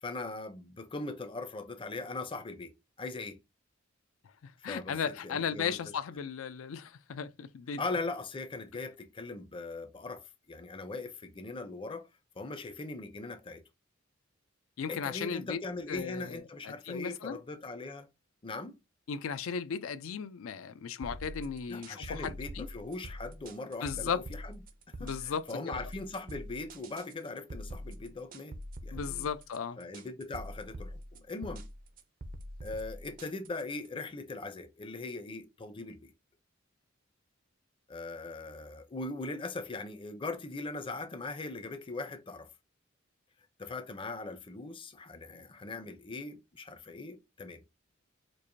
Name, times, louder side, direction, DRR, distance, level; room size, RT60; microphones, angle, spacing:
voice 1, 0.0-2.7 3.0-3.4 4.6-5.8 7.8-12.1 12.4-13.6 14.9-18.1 18.4-18.8 21.7-24.6 25.0-28.6 28.8-29.3 29.8-31.7 32.6-36.1 37.9-42.5 43.6-47.6, left 3 dB, 25° left, 0.5 m, -40 dB
voice 2, 4.4-7.8 14.8-15.6 15.9-17.4 19.1-22.7 23.8-24.2 25.0-25.8 28.9-29.8, left 6 dB, 90° left, 0.4 m, -36 dB
sound 1, 21.0-33.9, equal, 45° right, 0.5 m, -44 dB
4.6 x 2.5 x 2.6 m
head